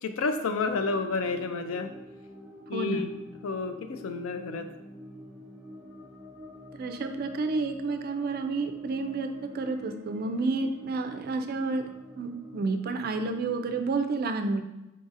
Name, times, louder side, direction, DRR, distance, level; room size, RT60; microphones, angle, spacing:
voice 1, 0.0-1.9 2.7-3.1 3.4-4.7, left 4 dB, 80° left, 7 dB, 0.4 m, -30 dB
sound 1, 0.5-14.0, left 1 dB, 5° right, 1.2 m, -47 dB
voice 2, 2.7-3.1 6.8-9.3 9.5-11.8 12.2-14.6, right 3 dB, 45° right, 7 dB, 0.3 m, -30 dB
3.9 x 3.9 x 2.5 m, 0.96 s
head